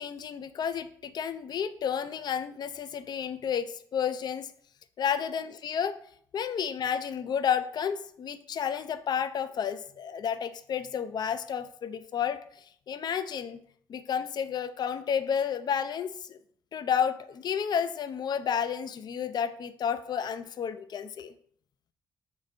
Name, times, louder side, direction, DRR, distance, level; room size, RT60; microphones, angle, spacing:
voice 1, 0.0-4.5 5.0-6.0 6.3-12.4 12.9-13.6 13.9-16.4 16.7-21.3, left 8 dB, 50° left, 12 dB, 0.4 m, -31 dB
4.1 x 3.7 x 2.5 m, 0.62 s
supercardioid pair, 55°, 9 cm